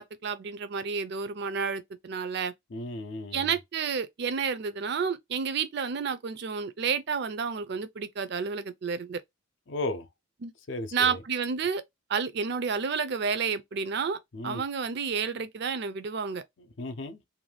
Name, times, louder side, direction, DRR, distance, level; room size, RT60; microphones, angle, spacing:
voice 1, 0.0-2.5 3.3-9.2 10.4-10.5 10.9-11.8 12.1-16.4, right 5 dB, 50° right, 0.4 m, -30 dB
voice 2, 2.7-3.6 9.7-10.1 10.7-11.2 14.3-14.6 16.8-17.2, left 2 dB, 60° left, 0.5 m, -35 dB
2.6 x 2.2 x 3.2 m
head